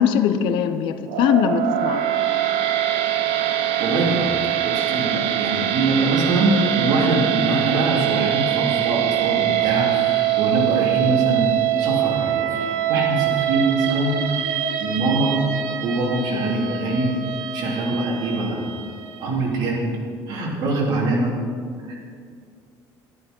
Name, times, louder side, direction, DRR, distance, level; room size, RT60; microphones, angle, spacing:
voice 1, 0.0-2.0, left 8 dB, 70° left, 10 dB, 0.8 m, -20 dB
sound 1, 1.1-19.3, right 11 dB, 90° right, 1.0 m, -23 dB
voice 2, 3.8-4.3 4.6-11.5 11.8-14.2 14.8-15.3 15.8-17.1 17.5-18.6 19.2-19.9 20.3-21.3 21.9-22.0, right 2 dB, 55° right, -3 dB, 3.4 m, -23 dB
12.5 x 10.5 x 5.4 m, 2.2 s
cardioid pair, 160°, 8 cm